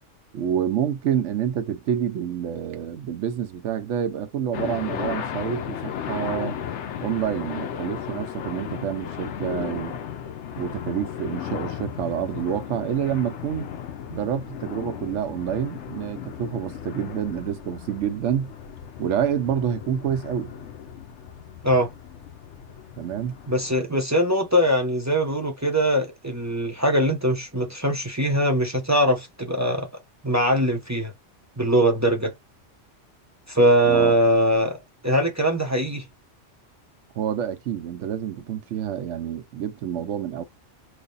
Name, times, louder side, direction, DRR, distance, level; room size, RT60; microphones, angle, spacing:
voice 1, 0.3-6.6 7.0-10.0 10.6-13.7 14.1-18.5 19.0-20.5 23.0-23.4 33.8-34.2 37.2-40.4, right 9 dB, 80° right, 1.0 m, -28 dB
sound 1, 4.5-23.7, left 8 dB, 75° left, 0.9 m, -35 dB
voice 2, 23.5-29.9 30.2-31.1 31.6-32.3 33.5-34.8 35.0-36.1, equal, 20° right, 0.5 m, -21 dB
3.2 x 2.1 x 3.9 m
omnidirectional pair, 1.2 m